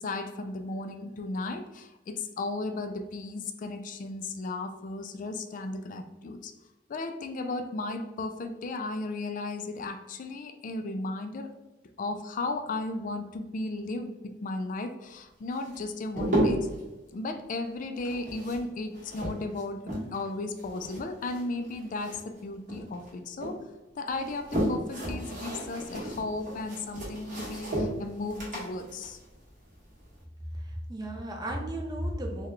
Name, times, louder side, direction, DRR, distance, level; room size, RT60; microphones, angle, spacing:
voice 1, 0.0-6.5 6.9-11.5 12.0-16.7 17.1-19.8 20.1-23.6 24.0-29.2, left 2 dB, 45° left, 8 dB, 0.3 m, -35 dB
sound 1, 15.5-16.8 17.9-20.3 20.6-22.4 22.7-23.6 24.1-30.2, right 1 dB, 40° right, 1.3 m, -33 dB
voice 2, 30.5-32.5, right 1 dB, 20° right, 1 dB, 0.5 m, -34 dB
3.7 x 2.2 x 3.1 m, 1.1 s
head